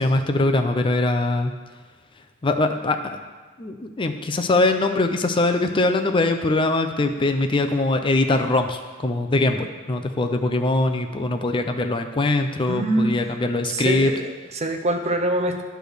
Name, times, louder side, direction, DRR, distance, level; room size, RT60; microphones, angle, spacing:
voice 1, 0.0-1.5 2.4-3.2 3.6-14.1, left 2 dB, 25° left, 6 dB, 0.4 m, -22 dB
voice 2, 12.7-13.1 13.6-15.6, right 1 dB, 30° right, 3 dB, 0.7 m, -24 dB
10.0 x 3.4 x 6.2 m, 1.4 s
head